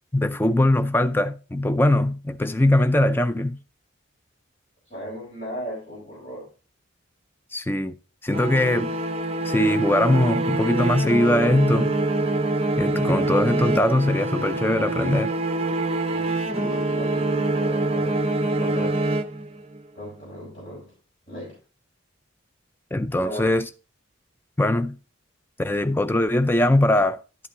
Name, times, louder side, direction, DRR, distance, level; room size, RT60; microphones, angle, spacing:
voice 1, 0.1-3.6 7.5-8.0 8.2-8.9 9.4-12.0 12.8-15.3 22.9-23.7 24.6-25.0 25.6-27.2, left 1 dB, 10° left, 0.3 m, -21 dB
voice 2, 4.9-6.5 16.1-18.2 18.5-19.0 19.9-20.9 21.3-21.6 23.2-23.6, equal, 40° left, 4.2 m, -36 dB
sound 1, 8.3-19.8, right 2 dB, 30° right, 0.6 m, -25 dB
10.5 x 5.6 x 3.6 m
head